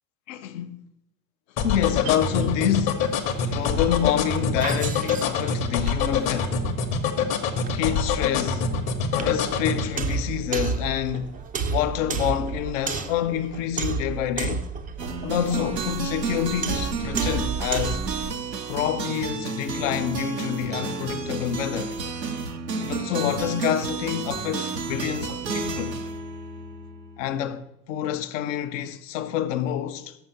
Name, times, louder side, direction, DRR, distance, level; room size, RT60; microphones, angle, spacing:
voice 1, 0.3-0.8 1.6-3.0 3.4-6.6 7.7-8.7 9.2-11.4 11.7-14.7 15.2-18.0 18.7-22.0 22.8-26.0 27.2-30.2, left 10 dB, 50° left, 0.7 m, -27 dB
sound 1, 1.6-9.9, left 6 dB, 35° left, 1.0 m, -25 dB
sound 2, 1.7-18.3, right 5 dB, 15° right, 0.5 m, -33 dB
sound 3, 15.0-27.3, right 5 dB, 85° right, 0.8 m, -31 dB
6.9 x 5.6 x 6.7 m
figure-of-eight pair, 80°, 48 cm